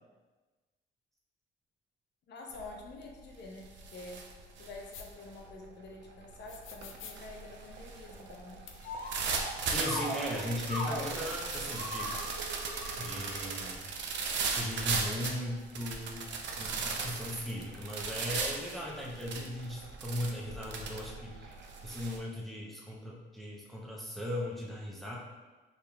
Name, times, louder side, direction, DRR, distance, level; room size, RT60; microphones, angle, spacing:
voice 1, 2.3-4.3 4.6-8.6, left 2 dB, 60° left, 0 dB, 0.8 m, -47 dB
sound 1, 2.5-2.9 3.2-22.2, right 4 dB, 65° right, 0.5 m, -38 dB
sound 2, 4.9-5.1 6.5-7.2 8.7-8.8 9.3-9.4 9.6-9.7 11.0-11.7, left 8 dB, 90° left, 0.4 m, -48 dB
sound 3, 8.8-9.5 9.8-11.2 11.7-13.5 14.1-14.4 15.1-15.3, left 1 dB, 45° left, 1.2 m, -39 dB
voice 2, 9.7-12.2 13.0-13.9 14.5-16.3 16.6-21.5 21.8-25.2, left 1 dB, ahead, -3 dB, 0.6 m, -38 dB
5.2 x 2.8 x 2.3 m, 1.3 s
cardioid pair, 90°, 20 cm